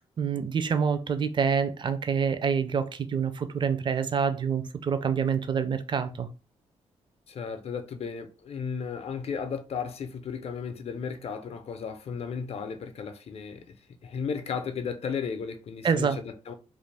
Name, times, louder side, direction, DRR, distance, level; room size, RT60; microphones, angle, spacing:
voice 1, 0.0-6.3 15.8-16.2, right 6 dB, 40° right, 0.4 m, -27 dB
voice 2, 7.3-13.8 14.0-16.5, left 6 dB, 60° left, 0.5 m, -34 dB
2.5 x 2.4 x 3.3 m
cardioid pair, 70°, 12 cm